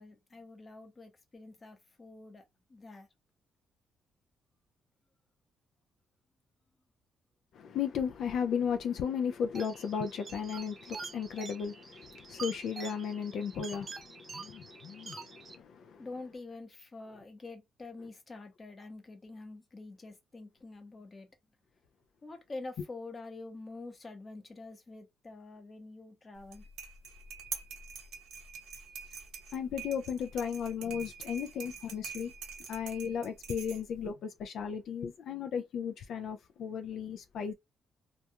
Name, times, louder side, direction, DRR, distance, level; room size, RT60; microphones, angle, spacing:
voice 1, 0.0-3.1 16.0-21.3 22.2-26.7, left 3 dB, 30° left, 0.8 m, -47 dB
voice 2, 7.5-16.1 29.5-32.3 32.7-37.5, left 7 dB, 70° left, 0.3 m, -35 dB
sound 1, 9.5-15.6, right 4 dB, 40° right, 0.5 m, -47 dB
sound 2, 26.4-34.1, right 6 dB, 90° right, 0.8 m, -45 dB
2.3 x 2.3 x 2.7 m
cardioid pair, 100°, 0 cm